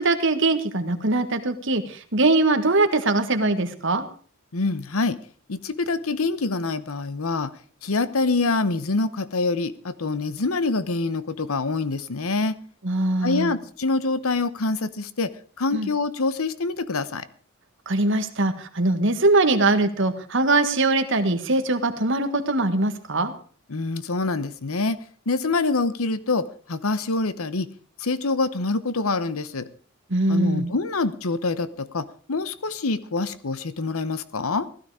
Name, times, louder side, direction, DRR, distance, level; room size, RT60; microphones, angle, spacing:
voice 1, 0.0-4.0 12.8-13.5 15.7-15.9 17.8-23.3 30.1-30.7, right 2 dB, 60° right, 8 dB, 1.6 m, -22 dB
voice 2, 4.5-5.2 5.5-7.5 7.8-12.6 13.2-15.3 15.6-17.3 23.7-25.0 25.3-27.7 28.0-29.7 30.3-34.7, left 3 dB, 85° left, 14 dB, 1.0 m, -25 dB
16.0 x 12.5 x 4.9 m, 0.44 s
head